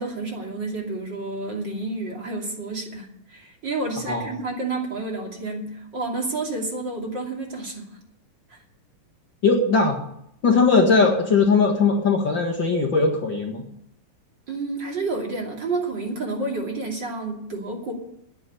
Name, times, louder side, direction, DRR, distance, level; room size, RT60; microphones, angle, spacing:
voice 1, 0.0-7.9 8.5-8.6 14.5-17.9, right 3 dB, 35° right, 0 dB, 2.9 m, -30 dB
voice 2, 9.4-10.0 10.4-13.6, left 4 dB, 45° left, 0 dB, 1.7 m, -19 dB
10.0 x 9.6 x 9.8 m, 0.76 s
omnidirectional pair, 4.2 m